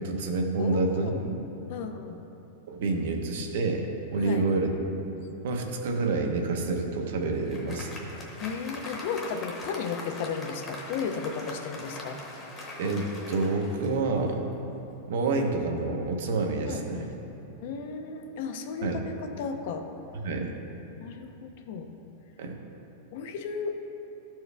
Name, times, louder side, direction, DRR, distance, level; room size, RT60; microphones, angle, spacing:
voice 1, 0.0-1.4 2.7-4.7 5.4-8.1 12.8-14.4 15.1-17.1 18.8-19.0 20.2-20.5 22.4-22.5, right 3 dB, 65° right, 3 dB, 0.8 m, -28 dB
voice 2, 0.6-1.4 1.7-2.2 4.2-4.5 8.4-12.2 16.7-17.1 17.6-19.9 21.0-21.9 23.1-23.9, left 5 dB, 50° left, 6 dB, 0.5 m, -34 dB
Applause, 6.9-14.4, left 2 dB, 15° left, 0.9 m, -42 dB
12.5 x 4.5 x 3.3 m, 2.9 s
supercardioid pair, 170°, 0 cm